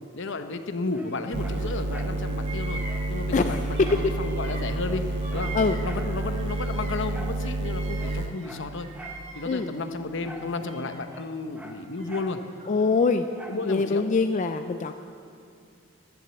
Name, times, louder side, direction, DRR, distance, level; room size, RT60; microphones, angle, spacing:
voice 1, 0.1-5.1 5.3-8.9 9.3-12.4 13.5-14.0, left 3 dB, 60° left, 8 dB, 0.8 m, -33 dB
Dog, 0.9-2.2 2.5-2.6 2.8-4.1 4.5-4.6 4.8-6.1 7.1-7.4 7.9-9.2 10.2-10.6 10.8-12.4 13.3-13.7 14.2-14.3, right 1 dB, 5° right, 0.9 m, -45 dB
Bird vocalization bird call bird song, 1.0-1.8 2.0-7.1 7.4-9.8 10.3-11.2 12.0-13.0, right 3 dB, 30° right, 1.8 m, -44 dB
sound 1, 1.3-8.4, right 2 dB, 55° right, 0.6 m, -29 dB
voice 2, 3.3-4.1 5.5-5.8 9.5-9.7 12.7-13.3 13.6-14.9, left 4 dB, 35° left, 7 dB, 0.4 m, -23 dB
11.0 x 11.0 x 7.1 m, 2.4 s
head